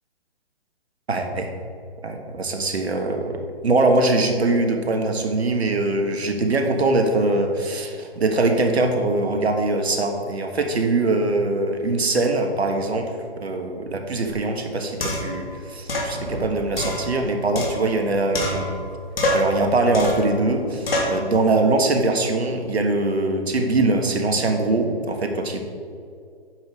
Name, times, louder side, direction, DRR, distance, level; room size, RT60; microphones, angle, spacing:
voice 1, 1.1-1.5 2.0-13.1 13.4-18.8 19.3-25.6, right 2 dB, 80° right, 4 dB, 1.6 m, -22 dB
sound 1, 14.3-14.4 15.0-15.4 15.9-16.1 16.8-18.0 18.3-18.9 19.2-19.6 19.9-20.3 20.9-21.2, left 1 dB, 65° left, 2.5 m, -25 dB
sound 2, 16.1-18.1, right 1 dB, 35° right, 2.0 m, -38 dB
9.4 x 6.8 x 4.7 m, 2.4 s
hypercardioid pair, 145°, 32 cm